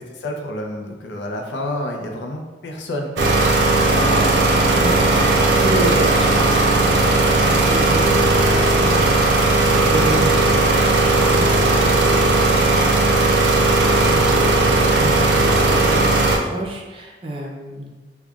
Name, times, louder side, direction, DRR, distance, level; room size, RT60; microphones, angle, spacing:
voice 1, 0.0-3.1 3.7-4.3, left 1 dB, 85° left, 2 dB, 0.5 m, -29 dB
sound 1, 3.2-16.4, right 2 dB, 80° right, 0.5 m, -16 dB
sound 2, 3.9-9.2, left 1 dB, 35° left, 0.5 m, -33 dB
voice 2, 4.7-9.2 9.4-17.9, right 1 dB, 30° right, -1 dB, 0.5 m, -30 dB
5.2 x 2.3 x 2.3 m, 1.3 s
head